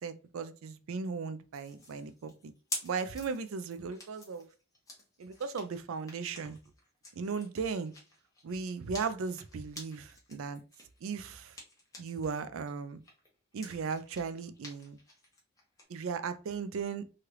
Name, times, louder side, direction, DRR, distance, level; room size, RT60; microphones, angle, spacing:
voice 1, 0.0-2.5 2.8-4.5 5.2-6.6 7.1-7.9 8.4-10.6 11.0-11.6 12.0-13.0 13.5-15.0 15.9-17.0, right 5 dB, 70° right, 0.4 m, -37 dB
sound 1, 1.5-12.3 12.7-15.8, left 2 dB, 15° left, 0.9 m, -48 dB
3.1 x 2.4 x 2.9 m
head